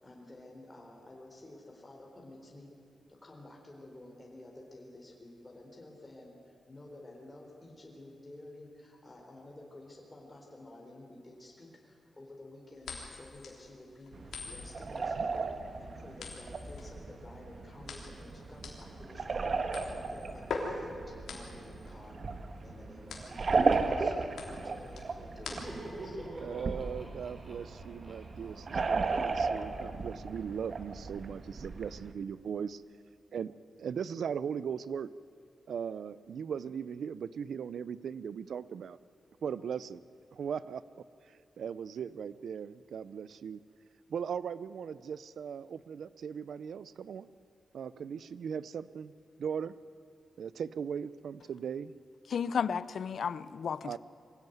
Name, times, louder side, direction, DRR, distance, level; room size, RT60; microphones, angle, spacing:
voice 1, 0.0-2.7 3.1-6.3 6.7-14.2 14.4-15.3 15.8-22.2 22.6-26.3, left 1 dB, 20° left, 4.0 m, -51 dB
Coin Flipping A, 12.8-26.0, left 4 dB, 90° left, 3.3 m, -44 dB
sound 1, 14.1-32.1, right 4 dB, 50° right, 1.4 m, -35 dB
Laughter, 25.2-29.9, right 1 dB, 30° right, 5.3 m, -46 dB
voice 2, 26.4-32.8 33.3-35.1 35.7-39.0 39.4-40.0 40.3-43.6 44.1-47.3 47.7-49.1 49.4-49.7 50.4-51.9 53.8-54.0, right 7 dB, 75° right, 0.6 m, -38 dB
voice 3, 52.3-54.0, left 7 dB, 70° left, 0.6 m, -33 dB
23.0 x 16.5 x 9.3 m
wide cardioid pair, 115°, 0 cm